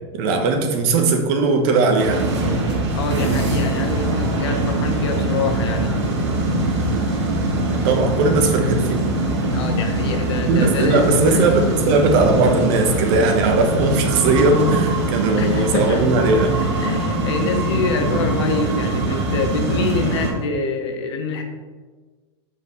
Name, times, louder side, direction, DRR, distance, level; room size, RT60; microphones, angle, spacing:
voice 1, 0.1-2.3 7.7-9.0 10.5-16.6, right 3 dB, 55° right, 4 dB, 1.2 m, -18 dB
sound 1, 2.0-20.3, right 2 dB, 80° right, 1.9 m, -22 dB
voice 2, 2.9-5.9 9.5-11.5 15.2-16.1 16.8-21.4, left 4 dB, 70° left, 5 dB, 1.1 m, -25 dB
8.0 x 4.8 x 3.2 m, 1.4 s
hypercardioid pair, 125°, 14 cm